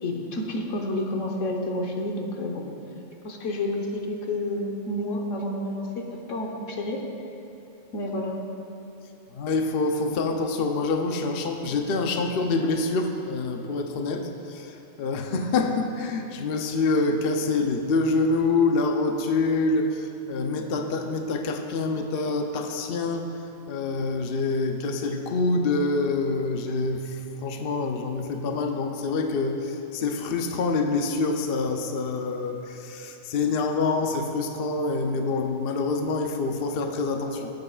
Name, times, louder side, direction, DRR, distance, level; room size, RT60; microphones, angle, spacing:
voice 1, 0.0-2.7 3.2-7.0 7.9-8.3, left 1 dB, 85° left, 1 dB, 1.4 m, -30 dB
voice 2, 9.3-23.3 23.7-37.5, left 3 dB, 55° left, 4 dB, 0.8 m, -26 dB
17.5 x 7.8 x 2.4 m, 3.0 s
omnidirectional pair, 1.3 m